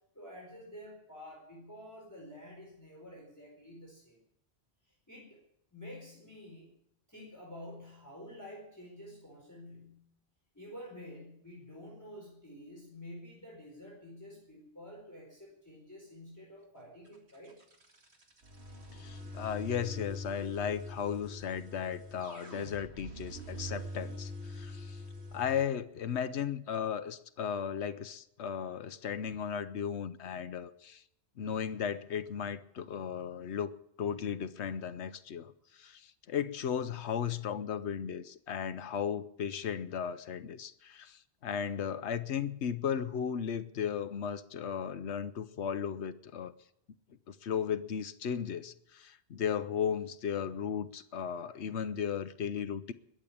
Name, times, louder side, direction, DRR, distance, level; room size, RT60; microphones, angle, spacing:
voice 1, 0.1-4.2 4.8-5.4 5.7-6.7 7.1-10.0 10.5-17.6, left 1 dB, 15° left, -2 dB, 4.5 m, -49 dB
sound 1, 17.1-25.6, left 1 dB, 75° right, 2.5 m, -44 dB
voice 2, 18.9-25.0 25.3-31.0 31.4-33.7 34.0-46.5 47.3-52.9, left 8 dB, 90° left, 11 dB, 1.1 m, -35 dB
21.0 x 7.6 x 8.6 m, 0.76 s
omnidirectional pair, 1.1 m